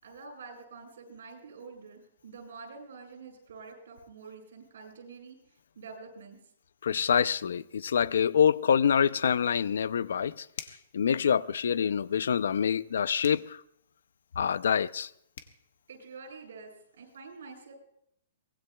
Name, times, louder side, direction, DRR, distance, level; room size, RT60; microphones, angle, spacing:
voice 1, 0.0-5.4 5.8-6.4 15.9-16.7 17.0-17.7, right 4 dB, 70° right, 7.4 m, -47 dB
voice 2, 6.8-10.5 10.9-13.6 14.4-15.1, left 7 dB, 75° left, 0.5 m, -26 dB
sound 1, 10.5-10.9 13.2-13.5 15.0-15.1 15.3-15.6, left 8 dB, 55° left, 1.3 m, -43 dB
23.5 x 20.0 x 2.3 m
hypercardioid pair, 175°, 0 cm